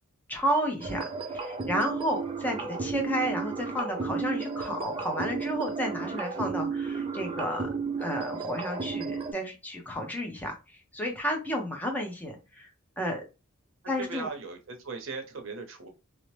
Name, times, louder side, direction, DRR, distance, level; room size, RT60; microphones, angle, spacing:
voice 1, 0.3-7.7 8.0-12.7 13.0-13.3 13.9-14.3, equal, 10° left, 1 dB, 0.6 m, -32 dB
sound 1, 0.8-9.3, right 5 dB, 25° right, 0.4 m, -33 dB
voice 2, 14.0-15.9, right 4 dB, 65° right, 5 dB, 0.7 m, -38 dB
2.7 x 2.0 x 3.1 m, 0.28 s
head